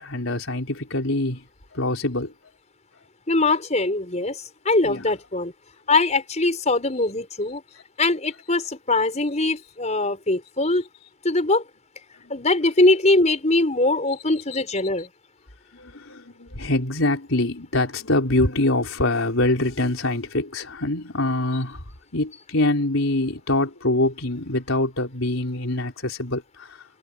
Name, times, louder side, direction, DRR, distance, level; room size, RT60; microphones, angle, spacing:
voice 1, 0.0-1.4 1.7-2.3 4.8-5.0 14.5-14.6 15.7-21.8 22.1-26.8, left 2 dB, 85° left, 4.0 m, -24 dB
voice 2, 3.3-5.5 5.9-7.6 8.0-10.8 11.2-11.6 12.3-15.1, left 2 dB, 35° left, 5.4 m, -22 dB
head